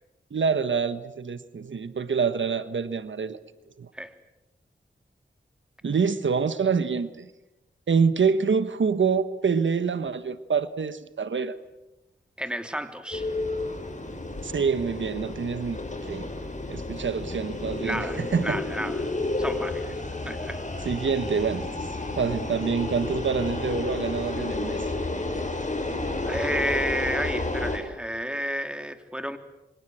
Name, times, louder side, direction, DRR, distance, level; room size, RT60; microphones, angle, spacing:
voice 1, 0.3-3.4 3.8-3.9 5.8-7.3 7.9-11.5 14.4-15.8 16.1-16.3 16.7-18.6 20.8-21.9 22.2-24.9, right 5 dB, 80° right, 12 dB, 1.3 m, -26 dB
voice 2, 12.4-13.3 17.8-19.0 19.4-19.9 20.2-20.6 26.3-29.4, equal, 5° right, 8 dB, 3.2 m, -31 dB
sound 1, 13.1-27.8, left 2 dB, 40° left, 6.3 m, -31 dB
28.0 x 25.0 x 7.8 m, 0.95 s
cardioid pair, 55°, 19 cm